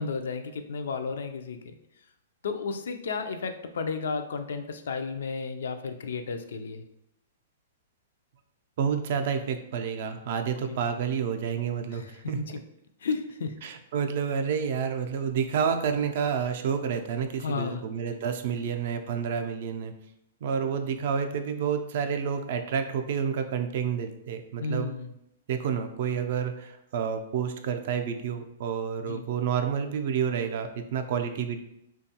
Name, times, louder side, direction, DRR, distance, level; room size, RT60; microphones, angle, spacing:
voice 1, 0.0-1.7 2.4-6.8 10.7-10.8 11.9-12.1 12.3-12.5 13.0-13.6 17.4-17.8 24.6-25.1 29.1-29.2, left 4 dB, 80° left, 7 dB, 0.3 m, -33 dB
voice 2, 8.8-12.4 13.6-19.9 20.4-24.9 25.5-31.6, right 7 dB, 60° right, 7 dB, 0.3 m, -29 dB
2.9 x 2.3 x 2.8 m, 0.81 s
hypercardioid pair, 140°, 0 cm